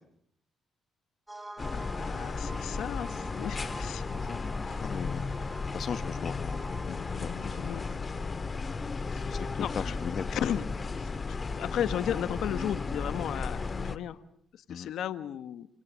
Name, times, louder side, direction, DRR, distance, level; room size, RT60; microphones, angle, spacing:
sound 1, 1.3-8.0, right 1 dB, 10° right, 2.5 m, -46 dB
sound 2, 1.6-14.0, left 4 dB, 30° left, 1.7 m, -34 dB
voice 1, 1.7-4.0 4.6-4.9 7.5-7.9 9.1-10.0 10.3-10.7 11.0-14.2 14.5-15.7, left 10 dB, 75° left, 12 dB, 1.4 m, -35 dB
voice 2, 4.8-7.6 9.3-10.2 14.7-14.9, left 7 dB, 55° left, 10 dB, 1.2 m, -39 dB
29.0 x 25.5 x 7.5 m, 0.68 s
cardioid pair, 90°, 0 cm